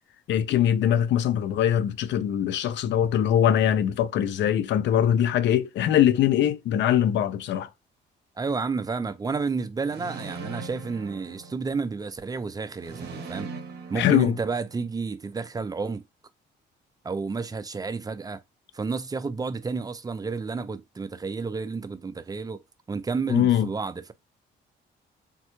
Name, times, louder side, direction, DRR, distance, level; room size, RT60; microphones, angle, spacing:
voice 1, 0.3-7.7 14.0-14.4 23.3-23.7, left 10 dB, 65° left, 0.4 m, -22 dB
voice 2, 8.4-13.5 13.9-16.0 17.0-18.4 18.7-22.6 22.9-24.1, right 4 dB, 20° right, 0.3 m, -31 dB
sound 1, 9.8-12.0 12.8-15.0, right 4 dB, 55° right, 0.7 m, -40 dB
3.5 x 2.1 x 2.9 m
cardioid pair, 90°, 20 cm